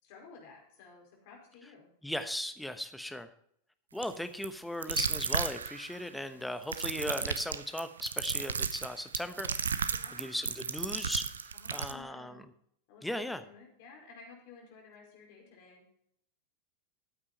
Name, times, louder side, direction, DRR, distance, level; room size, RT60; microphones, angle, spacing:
voice 1, 0.0-1.9 9.9-10.3 11.5-12.4 12.9-15.8, left 4 dB, 45° left, 0 dB, 5.0 m, -54 dB
voice 2, 2.0-3.3 3.9-9.9 10.2-11.3 11.7-12.4 13.0-13.4, left 1 dB, 5° left, 9 dB, 1.0 m, -37 dB
sound 1, 4.0-4.2 4.4-4.5 4.8-6.0 6.6-11.9, right 6 dB, 70° right, 0.7 m, -34 dB
14.0 x 8.7 x 4.3 m, 0.69 s
figure-of-eight pair, 90°, 0 cm